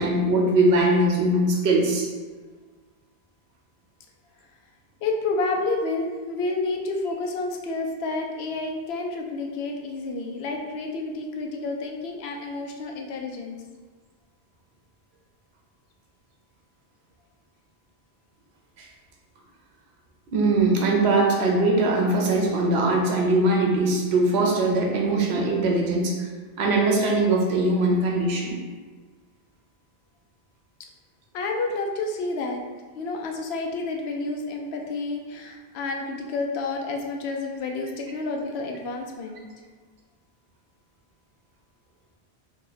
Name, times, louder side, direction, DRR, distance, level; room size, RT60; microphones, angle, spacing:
voice 1, 0.0-2.1 18.8-18.9 20.3-26.3 26.6-28.5, right 2 dB, 80° right, 0 dB, 0.9 m, -21 dB
voice 2, 5.0-13.6 31.3-32.6 32.9-39.4, left 3 dB, 80° left, 2 dB, 0.8 m, -30 dB
2.8 x 2.7 x 3.9 m, 1.4 s
omnidirectional pair, 1.1 m